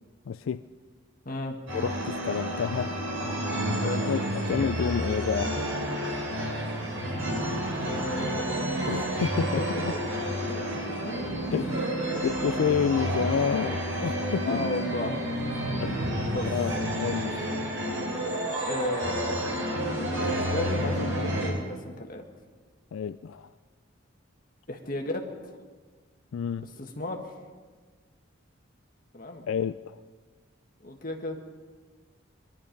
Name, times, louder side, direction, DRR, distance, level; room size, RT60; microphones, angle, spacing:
voice 1, 0.3-0.6 1.7-3.0 4.0-5.6 8.9-9.9 11.5-11.7 12.2-14.7 15.8-16.0 16.5-17.5 22.9-23.5 26.3-26.6 29.5-30.0, left 7 dB, 80° left, 12 dB, 0.4 m, -29 dB
voice 2, 1.2-1.6 3.8-4.1 7.8-8.6 9.6-9.7 10.5-11.6 14.4-15.2 16.3-16.5 18.6-19.5 20.1-22.2 24.7-25.6 26.6-27.3 29.1-29.5 30.8-31.4, left 1 dB, 45° left, 2 dB, 1.6 m, -34 dB
sound 1, 1.7-21.5, equal, 75° right, 3.8 m, -30 dB
22.0 x 12.0 x 5.3 m, 1.5 s
head